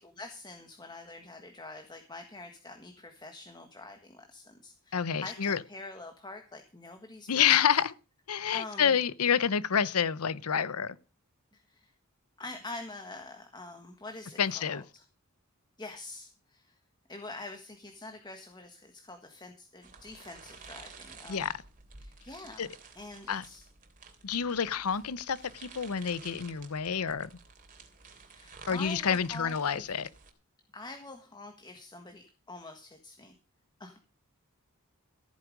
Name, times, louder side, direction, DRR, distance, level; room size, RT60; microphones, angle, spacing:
voice 1, 0.0-7.6 8.5-9.0 11.5-11.9 12.4-15.0 15.8-16.8 17.1-21.5 22.0-23.7 24.8-25.0 25.4-25.5 28.3-29.9 30.7-33.3 33.8-34.0, left 2 dB, 20° left, 1.5 m, -46 dB
voice 2, 4.9-5.6 7.3-7.9 8.3-11.0 14.4-14.8 21.3-21.5 22.6-22.7 23.3-23.4 24.2-27.3 28.7-30.1, left 7 dB, 80° left, 0.7 m, -28 dB
sound 1, 19.8-30.3, right 4 dB, 40° right, 3.0 m, -52 dB
14.5 x 9.3 x 5.1 m
head